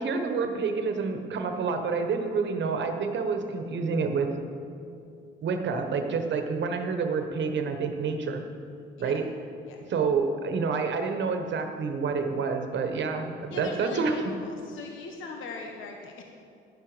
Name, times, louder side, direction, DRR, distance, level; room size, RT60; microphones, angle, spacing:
voice 1, 0.0-4.3 5.4-8.4 9.0-9.3 9.9-14.2, right 5 dB, 65° right, 5 dB, 1.3 m, -28 dB
voice 2, 13.5-16.2, left 3 dB, 85° left, 2 dB, 1.2 m, -40 dB
11.5 x 11.5 x 5.1 m, 2.5 s
cardioid pair, 90°, 20 cm